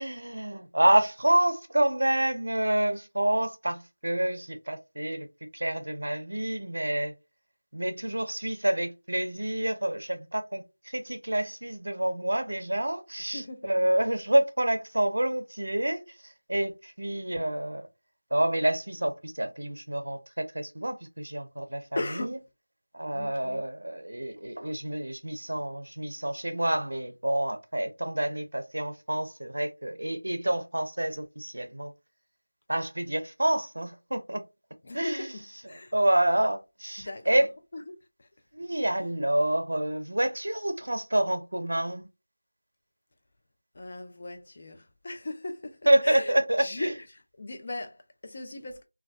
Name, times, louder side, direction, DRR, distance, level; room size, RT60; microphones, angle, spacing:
voice 1, 0.0-5.3 5.5-7.1 7.7-17.9 18.3-21.8 22.9-31.9 32.7-34.4 34.9-35.3 35.9-37.5 38.5-42.1 45.9-46.9, right 1 dB, 65° right, 0.6 m, -28 dB
voice 2, 13.3-13.9 21.9-22.4 23.1-23.6 34.8-35.9 37.0-37.5 37.7-38.3 43.7-48.8, left 2 dB, 25° left, 0.4 m, -38 dB
2.3 x 2.2 x 2.4 m
figure-of-eight pair, 175°, 0 cm